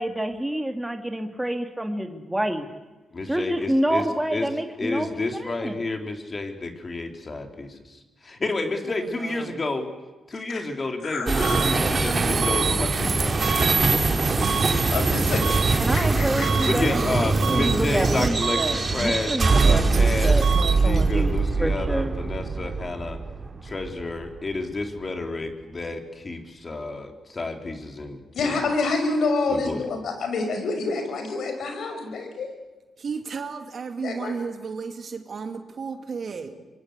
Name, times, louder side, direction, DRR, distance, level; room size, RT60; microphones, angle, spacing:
voice 1, 0.0-2.7 3.3-5.1 5.4-5.7 15.8-17.0 17.5-21.3 21.6-22.2, right 1 dB, 10° right, 6 dB, 2.6 m, -28 dB
voice 2, 3.1-4.0 4.3-4.5 4.8-9.9 10.3-15.4 16.6-23.2 23.6-28.6 29.5-29.9, left 2 dB, 40° left, 5 dB, 3.9 m, -31 dB
voice 3, 8.8-9.5 11.6-13.1 33.0-36.7, right 5 dB, 55° right, 6 dB, 2.5 m, -34 dB
voice 4, 11.0-12.2 14.9-16.9 28.3-32.5 34.0-34.3, left 3 dB, 70° left, 5 dB, 6.1 m, -28 dB
sound 1, 11.3-24.6, right 3 dB, 40° right, 3.1 m, -23 dB
sound 2, 11.4-11.7 12.4-12.7 13.4-13.7 14.4-14.7 15.4-15.7 16.4-16.7 17.4-17.7 18.4-18.7 19.4-19.7 20.4-20.7, right 7 dB, 75° right, 2.3 m, -27 dB
25.5 x 22.5 x 8.3 m, 1.2 s
supercardioid pair, 55°, 0 cm